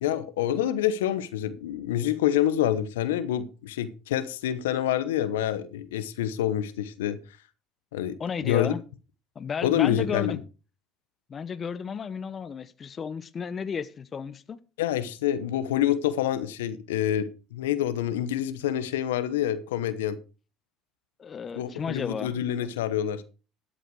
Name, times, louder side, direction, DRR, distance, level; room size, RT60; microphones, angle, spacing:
voice 1, 0.0-7.2 7.9-8.2 8.4-8.7 9.6-10.4 14.8-20.2 21.5-23.2, left 11 dB, 85° left, 0.9 m, -27 dB
voice 2, 8.2-8.8 9.3-10.4 11.3-14.6 21.2-22.3, left 6 dB, 40° left, 0.9 m, -33 dB
13.0 x 7.8 x 4.8 m
hypercardioid pair, 70°, 0 cm